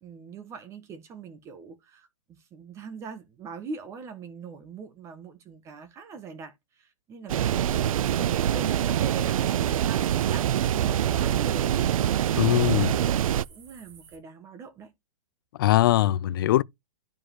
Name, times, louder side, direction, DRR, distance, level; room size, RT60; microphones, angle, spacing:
voice 1, 0.0-2.1 2.5-11.9 12.5-14.9, right 5 dB, 15° right, 1.0 m, -42 dB
sound 1, 7.3-13.5, right 11 dB, 80° right, 0.4 m, -25 dB
sound 2, 7.7-14.2, right 4 dB, 50° right, 4.1 m, -50 dB
voice 2, 12.4-12.9 15.6-16.6, left 15 dB, 40° left, 0.4 m, -21 dB
12.0 x 5.1 x 2.8 m
hypercardioid pair, 165°, 17 cm